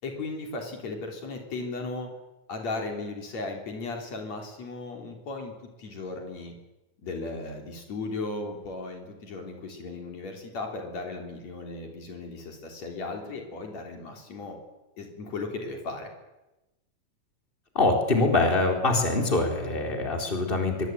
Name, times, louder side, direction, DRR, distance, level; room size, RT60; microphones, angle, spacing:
voice 1, 0.0-2.1 2.5-6.5 7.0-14.6 15.0-16.1, left 3 dB, 65° left, 3 dB, 4.8 m, -36 dB
voice 2, 17.7-20.9, left 2 dB, 15° left, 3 dB, 4.2 m, -24 dB
23.5 x 23.5 x 9.4 m, 1.0 s
omnidirectional pair, 3.3 m